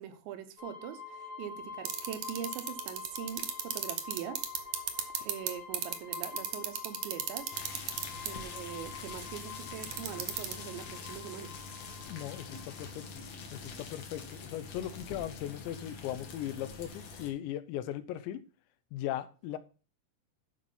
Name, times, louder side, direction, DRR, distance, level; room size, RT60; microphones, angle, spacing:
voice 1, 0.0-4.8 5.2-7.5 8.2-11.5, right 9 dB, 85° right, 3.3 m, -42 dB
sound 1, 0.6-13.0, left 5 dB, 75° left, 3.9 m, -47 dB
sound 2, 1.8-5.5 5.7-8.3 9.8-10.5, right 12 dB, 70° right, 1.9 m, -31 dB
sound 3, 7.5-17.3, left 4 dB, 55° left, 2.0 m, -45 dB
voice 2, 12.1-13.2 13.5-18.4 18.9-19.6, left 12 dB, 90° left, 3.1 m, -38 dB
12.0 x 5.1 x 5.4 m
omnidirectional pair, 5.1 m